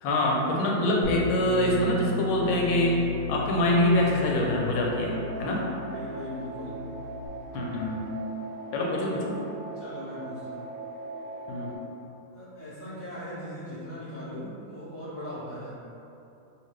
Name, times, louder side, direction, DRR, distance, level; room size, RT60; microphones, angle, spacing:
voice 1, 0.0-3.0 3.3-5.6 7.5-8.0 8.7-9.4 11.5-11.8, left 1 dB, 90° left, -2 dB, 1.4 m, -25 dB
Bass guitar, 1.0-7.3, left 1 dB, 70° left, 0.9 m, -35 dB
sound 1, 3.4-11.8, right 3 dB, 80° right, 1.3 m, -40 dB
voice 2, 5.3-6.8 9.7-10.7 12.3-15.8, left 1 dB, 10° left, -13 dB, 0.8 m, -39 dB
3.1 x 2.8 x 3.1 m, 2.7 s
omnidirectional pair, 2.2 m